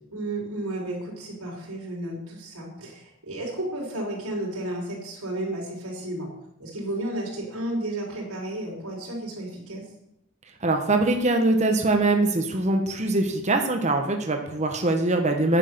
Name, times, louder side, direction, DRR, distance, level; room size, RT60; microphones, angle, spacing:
voice 1, 0.1-6.3 6.6-9.9, right 1 dB, 85° right, -4 dB, 4.1 m, -32 dB
voice 2, 10.6-15.6, right 2 dB, 30° right, 4 dB, 1.2 m, -23 dB
9.7 x 7.5 x 6.8 m, 0.80 s
head